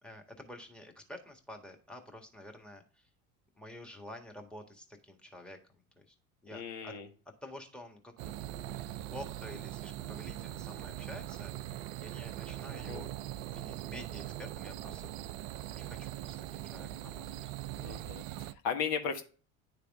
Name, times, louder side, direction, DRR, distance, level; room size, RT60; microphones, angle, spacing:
voice 1, 0.0-3.1 3.5-6.1 6.4-6.9 7.2-8.1 8.6-13.1 13.4-15.1 15.7-17.5, left 1 dB, ahead, 5 dB, 1.5 m, -49 dB
voice 2, 6.5-7.1 12.7-13.0 17.8-18.2 18.6-19.2, left 6 dB, 60° left, 5 dB, 1.4 m, -36 dB
sound 1, 8.2-18.5, right 13 dB, 70° right, 0.5 m, -41 dB
10.0 x 3.4 x 3.5 m, 0.39 s
hypercardioid pair, 70°, 41 cm